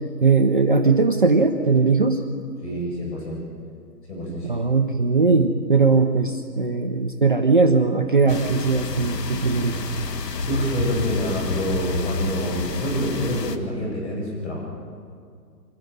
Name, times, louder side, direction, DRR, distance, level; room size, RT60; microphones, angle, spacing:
voice 1, 0.2-2.2 4.4-9.8, right 4 dB, 30° right, 4 dB, 0.7 m, -19 dB
voice 2, 2.6-3.4 4.1-4.5 10.4-14.6, equal, 40° left, -2 dB, 7.7 m, -27 dB
sound 1, 8.3-13.6, left 3 dB, 75° left, 1.7 m, -29 dB
26.5 x 13.0 x 9.4 m, 2.3 s
hypercardioid pair, 170°, 49 cm